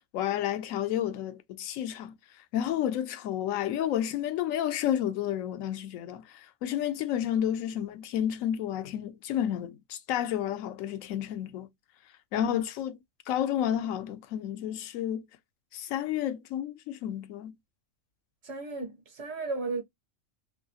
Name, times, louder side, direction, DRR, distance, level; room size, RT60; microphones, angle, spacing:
voice 1, 0.1-2.1 2.5-11.7 12.3-13.0 13.3-15.2 15.7-17.5, left 10 dB, 85° left, 1.0 m, -31 dB
voice 2, 18.4-19.8, right 3 dB, 60° right, 1.0 m, -35 dB
3.0 x 2.5 x 2.7 m
omnidirectional pair, 1.3 m